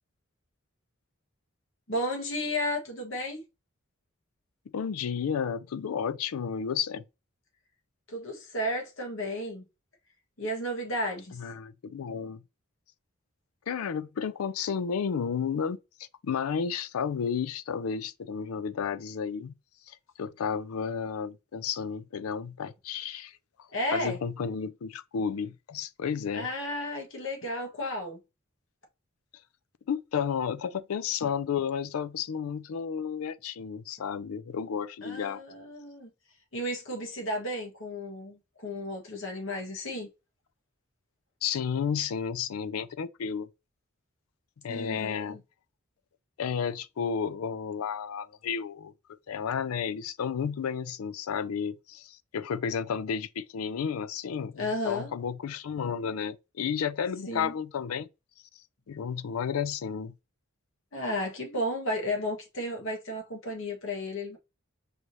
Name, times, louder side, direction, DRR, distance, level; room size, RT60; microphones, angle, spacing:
voice 1, 1.9-3.4 8.1-9.6 10.4-11.4 23.7-24.2 26.3-28.2 35.0-36.1 36.5-40.1 44.7-45.4 54.6-55.1 57.3-57.5 60.9-64.4, left 1 dB, 65° left, 1.4 m, -33 dB
voice 2, 4.7-7.0 11.3-12.4 13.7-19.5 19.9-26.5 29.9-35.4 41.4-43.5 44.6-45.4 46.4-48.9 49.3-58.1 58.9-60.1, left 7 dB, 90° left, 0.4 m, -32 dB
4.8 x 2.7 x 3.1 m
head